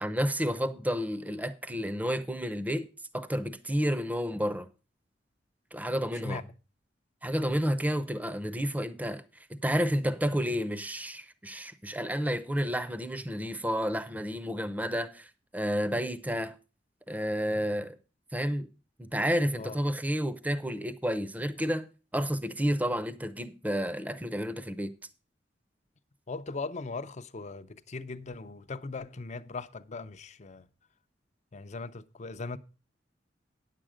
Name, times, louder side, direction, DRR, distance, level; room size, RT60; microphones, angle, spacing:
voice 1, 0.0-2.9 3.1-4.7 5.7-6.4 7.2-16.6 17.1-18.0 18.3-18.7 19.0-21.9 22.1-24.9, equal, 10° right, 0.6 m, -30 dB
voice 2, 6.1-6.4 19.5-19.8 26.3-30.6 31.5-32.6, left 3 dB, 40° left, 0.6 m, -39 dB
9.5 x 7.5 x 5.0 m
head